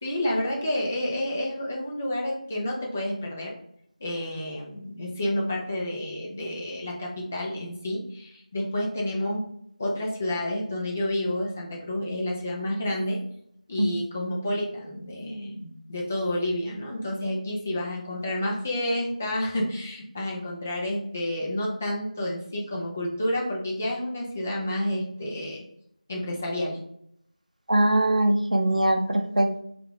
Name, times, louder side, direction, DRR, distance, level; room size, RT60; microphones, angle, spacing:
voice 1, 0.0-3.5 4.0-9.5 9.8-13.2 13.7-25.6 26.1-26.8, left 1 dB, 15° left, -3 dB, 0.4 m, -30 dB
voice 2, 27.7-29.6, right 1 dB, 70° right, 5 dB, 0.5 m, -22 dB
3.3 x 2.4 x 3.3 m, 0.71 s
figure-of-eight pair, 170°, 4 cm